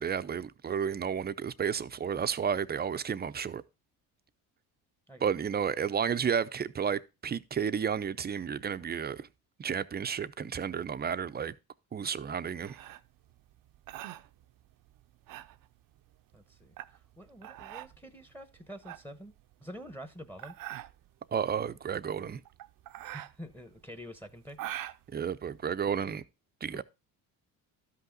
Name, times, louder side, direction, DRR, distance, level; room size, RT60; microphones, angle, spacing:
voice 1, 0.0-3.6 5.2-9.3 9.6-11.5 11.9-12.8 21.3-22.4 25.1-26.2 26.6-26.8, right 7 dB, 25° right, 0.6 m, -32 dB
sound 1, 12.6-26.2, right 14 dB, 60° right, 0.7 m, -45 dB
voice 2, 16.3-19.3 19.6-20.6 23.0-24.6 26.7-26.8, equal, 5° left, 1.1 m, -47 dB
12.5 x 5.6 x 3.9 m
cardioid pair, 90°, 37 cm